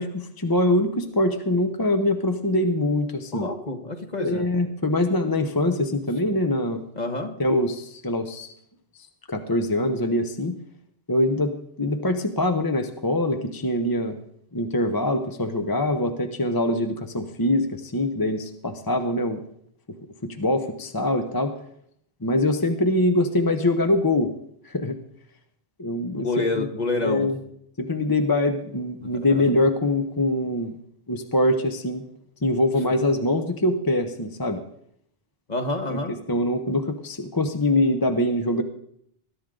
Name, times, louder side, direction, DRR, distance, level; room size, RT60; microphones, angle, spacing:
voice 1, 0.0-3.5 4.2-6.8 7.4-8.5 9.3-10.6 11.1-14.2 14.5-19.4 20.2-21.5 22.2-24.3 24.6-25.0 25.8-26.3 26.6-26.7 27.0-27.4 27.8-30.7 31.1-32.0 32.4-34.6 35.9-36.0 36.3-38.6, left 1 dB, 20° left, 7 dB, 0.8 m, -23 dB
voice 2, 3.3-4.5 6.2-6.3 6.9-7.3 26.1-27.3 29.0-29.4 32.8-32.9 35.5-36.1, left 2 dB, 40° left, 5 dB, 1.6 m, -28 dB
21.0 x 12.0 x 3.8 m, 0.69 s
omnidirectional pair, 1.1 m